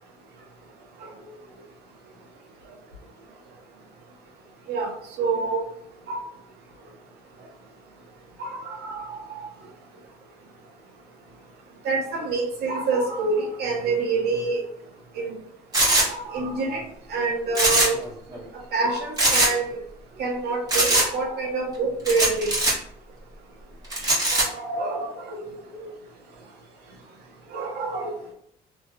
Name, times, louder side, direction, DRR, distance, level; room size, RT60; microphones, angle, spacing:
voice 1, 4.7-5.6 6.1-6.2 8.4-9.5 11.8-14.6 15.1-15.4 15.9-16.8 17.1-18.0 18.7-19.8 20.2-22.6 24.3-25.5 25.8-25.9 27.5-28.1, right 3 dB, 75° right, 0 dB, 1.0 m, -27 dB
sound 1, 15.7-16.1 17.5-18.1 18.3-18.4 19.2-19.5 20.7-21.1 22.1-22.7 23.9-24.4, right 1 dB, 20° right, 1.4 m, -20 dB
3.1 x 3.0 x 2.3 m, 0.69 s
cardioid pair, 110°, 17 cm